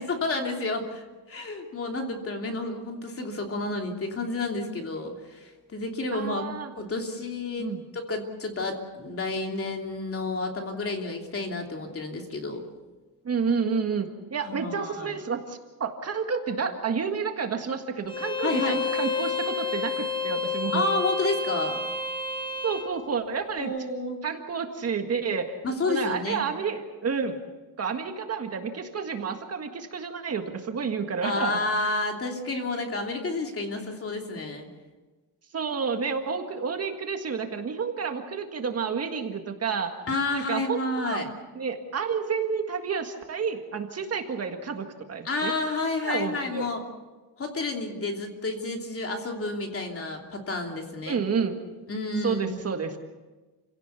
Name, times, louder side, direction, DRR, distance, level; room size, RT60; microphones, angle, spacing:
voice 1, 0.0-6.5 6.8-12.6 14.4-15.2 18.4-18.8 20.7-21.8 23.6-24.2 25.6-26.4 31.2-34.7 40.1-41.3 45.2-46.8 47.4-51.2 51.9-52.6, left 2 dB, 35° left, 2 dB, 3.0 m, -30 dB
voice 2, 6.1-6.7 7.6-7.8 13.2-20.8 22.6-23.7 24.2-25.6 25.9-27.4 27.8-31.6 35.5-39.9 40.3-41.3 41.6-45.5 46.0-46.7 51.1-51.6 52.2-53.0, right 5 dB, 35° right, 5 dB, 1.8 m, -30 dB
Bowed string instrument, 18.1-22.9, left 4 dB, 10° left, 1.5 m, -30 dB
29.0 x 17.0 x 6.9 m, 1.2 s
cardioid pair, 160°, 40 cm